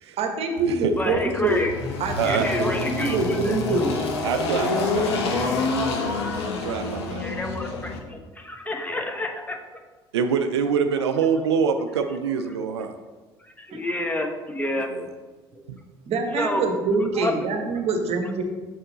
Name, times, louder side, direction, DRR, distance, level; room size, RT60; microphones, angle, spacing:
voice 1, 0.2-1.6 2.0-4.0 13.7-13.8 16.1-18.4, right 3 dB, 50° right, 4 dB, 1.1 m, -25 dB
Engine, 0.6-8.0, left 3 dB, 80° left, 0.8 m, -28 dB
voice 2, 1.0-1.7 2.2-3.9 7.2-9.6 13.4-14.9 15.5-15.6 16.3-16.6 17.1-17.3, left 1 dB, 10° left, 3 dB, 1.0 m, -29 dB
voice 3, 4.2-5.1 6.4-7.2 10.1-12.9 14.9-15.0 15.7-15.8, right 6 dB, 80° right, 7 dB, 0.4 m, -25 dB
6.4 x 4.2 x 3.9 m, 1.3 s
figure-of-eight pair, 60°, 14 cm